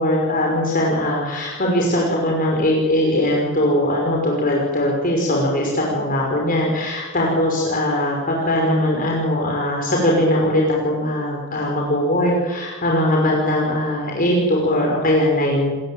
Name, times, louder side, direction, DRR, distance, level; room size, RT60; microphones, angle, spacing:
voice 1, 0.0-15.7, left 1 dB, 45° left, -1 dB, 6.0 m, -20 dB
29.5 x 21.5 x 9.0 m, 1.3 s
head